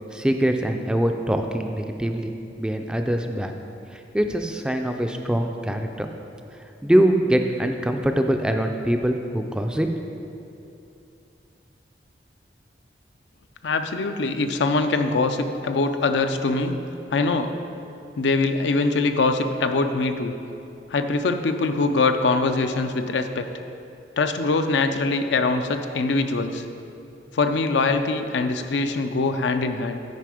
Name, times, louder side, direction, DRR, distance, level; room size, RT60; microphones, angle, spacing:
voice 1, 0.1-3.5 3.9-6.1 6.8-10.3, right 1 dB, 5° right, 5 dB, 0.3 m, -23 dB
voice 2, 13.6-16.8 17.1-17.5 18.2-20.3 20.9-23.5 24.2-26.6 27.3-30.0, left 3 dB, 90° left, 7 dB, 0.5 m, -23 dB
9.2 x 5.1 x 4.9 m, 2.7 s
head